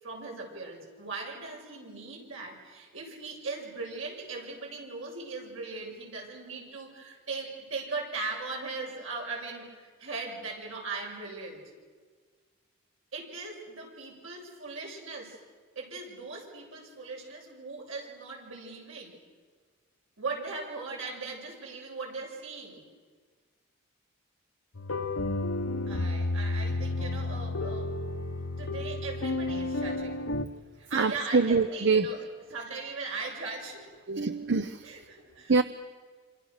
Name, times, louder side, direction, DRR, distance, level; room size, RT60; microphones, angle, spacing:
voice 1, 0.0-11.6 13.1-15.4 15.8-19.2 20.2-22.8 25.9-28.0 28.6-30.2 30.8-32.2 32.5-33.9 34.8-35.6, right 3 dB, 75° right, 0 dB, 7.5 m, -39 dB
sound 1, 24.8-30.4, left 2 dB, 75° left, 1.2 m, -31 dB
voice 2, 30.9-32.1 34.1-34.9 35.5-35.6, right 4 dB, 55° right, 12 dB, 0.8 m, -25 dB
28.0 x 27.0 x 6.6 m, 1.5 s
head